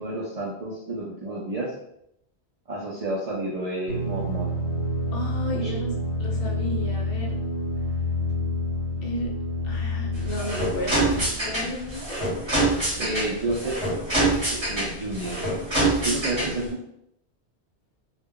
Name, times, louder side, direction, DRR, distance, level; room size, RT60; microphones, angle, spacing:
voice 1, 0.0-1.7 2.7-4.6 5.5-5.7 12.9-13.8 14.1-15.5 16.0-16.8, right 2 dB, 55° right, -5 dB, 0.4 m, -30 dB
sound 1, 3.9-11.3, left 1 dB, 75° right, 0.9 m, -28 dB
voice 2, 5.1-5.9 6.2-7.4 9.0-9.3 9.6-12.2, left 1 dB, 65° left, 0 dB, 0.7 m, -33 dB
sound 2, 10.1-16.7, right 2 dB, 30° right, 0.8 m, -26 dB
2.1 x 2.1 x 3.6 m, 0.77 s
omnidirectional pair, 1.1 m